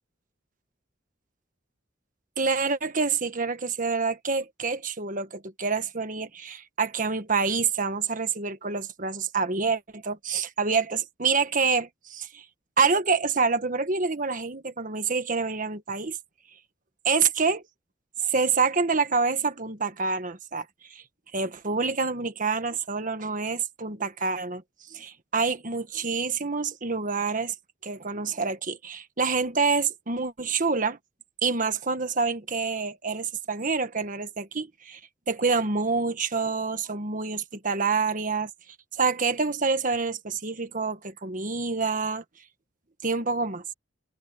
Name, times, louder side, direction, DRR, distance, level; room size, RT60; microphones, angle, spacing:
voice 1, 2.4-12.4 12.8-16.2 17.0-17.6 18.2-21.0 21.3-24.6 24.9-27.5 27.8-31.0 31.4-35.0 35.3-38.5 39.0-42.2 43.0-43.6, right 4 dB, 45° right, 1.5 m, -27 dB
head